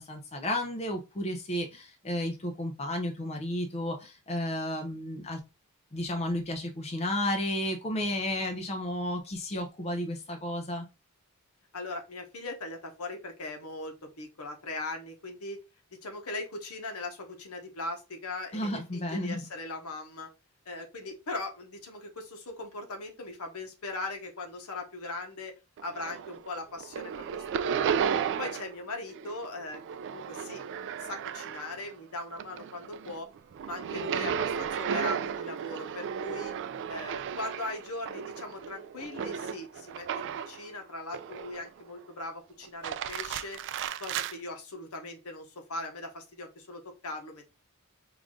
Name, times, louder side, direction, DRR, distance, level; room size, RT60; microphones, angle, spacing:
voice 1, 0.0-5.4 5.9-10.9 18.5-19.4, left 1 dB, 30° left, 3 dB, 0.6 m, -32 dB
voice 2, 11.7-15.6 16.0-20.3 20.6-25.5 25.8-28.0 28.4-29.8 30.1-30.6 31.0-33.3 33.7-36.5 36.9-43.6 44.0-47.4, left 2 dB, 75° left, 4 dB, 1.1 m, -39 dB
sound 1, 25.8-26.5 26.8-28.8 29.1-31.9 32.3-40.6 41.1-41.8 42.6-44.3, right 8 dB, 55° right, 0.3 m, -34 dB
4.8 x 2.5 x 3.6 m, 0.28 s
head